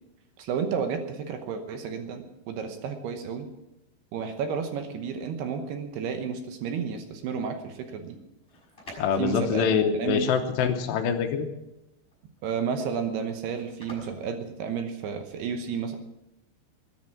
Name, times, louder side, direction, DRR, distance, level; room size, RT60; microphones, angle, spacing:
voice 1, 0.4-3.5 4.1-8.2 9.2-9.7 10.0-10.3 12.4-16.0, right 6 dB, 70° right, 6 dB, 2.8 m, -31 dB
sound 1, 8.4-15.3, equal, 10° left, 5.9 m, -50 dB
voice 2, 9.0-11.5, left 6 dB, 75° left, 6 dB, 3.0 m, -25 dB
20.0 x 10.5 x 5.9 m, 0.92 s
omnidirectional pair, 5.4 m